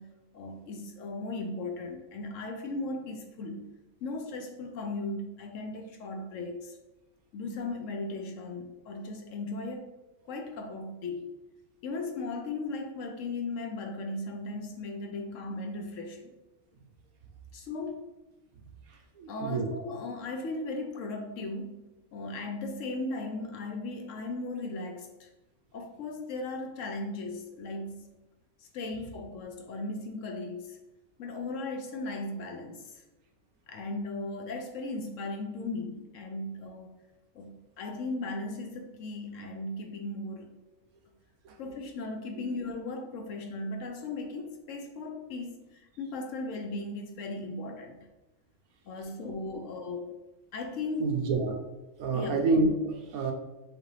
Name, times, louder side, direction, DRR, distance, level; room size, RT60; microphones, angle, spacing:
voice 1, 0.0-3.7 4.0-6.8 7.3-9.9 10.2-11.4 11.8-16.3 17.5-18.1 19.3-25.3 25.7-28.2 28.6-30.8 31.2-33.0 33.7-37.0 37.3-40.5 41.6-48.0 48.9-50.2 50.5-51.1 52.1-52.4, left 2 dB, 70° left, 5 dB, 0.9 m, -37 dB
voice 2, 19.2-19.7 41.4-41.5 51.0-51.5 52.0-53.3, right 3 dB, 80° right, 3 dB, 1.2 m, -27 dB
6.4 x 2.5 x 3.2 m, 0.99 s
omnidirectional pair, 1.5 m